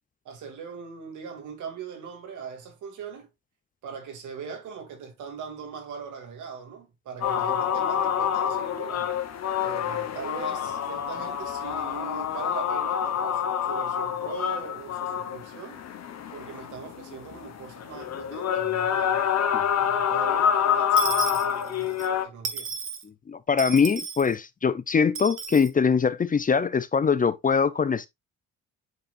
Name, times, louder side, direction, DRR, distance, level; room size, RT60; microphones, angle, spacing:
voice 1, 0.2-3.3 3.8-9.1 9.6-15.8 16.3-19.4 19.8-22.7, right 6 dB, 80° right, 2.5 m, -40 dB
sound 1, 7.2-22.3, left 8 dB, 60° left, 1.2 m, -27 dB
Dishes pots and pans / Coin (dropping), 21.0-22.1 22.4-23.0 23.6-24.3 25.1-25.7, right 6 dB, 45° right, 1.4 m, -33 dB
voice 2, 23.3-28.1, left 6 dB, 30° left, 0.5 m, -22 dB
8.0 x 4.9 x 2.5 m
cardioid pair, 90°, 30 cm